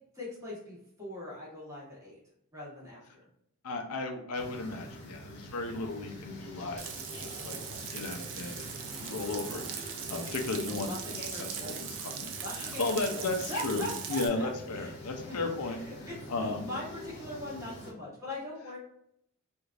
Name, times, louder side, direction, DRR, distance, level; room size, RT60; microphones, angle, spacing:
voice 1, 0.1-2.2 2.5-3.0 10.7-11.8 12.4-14.9 15.3-15.4 15.6-18.8, left 1 dB, 15° right, -6 dB, 1.2 m, -41 dB
voice 2, 3.6-6.8 7.1-7.6 7.9-15.8 16.3-16.7, left 3 dB, 80° left, 3 dB, 0.5 m, -35 dB
sound 1, 4.3-17.9, equal, 50° left, 0.8 m, -46 dB
Frying (food), 6.8-14.3, right 8 dB, 55° right, 0.4 m, -40 dB
3.2 x 2.5 x 2.4 m, 0.74 s
head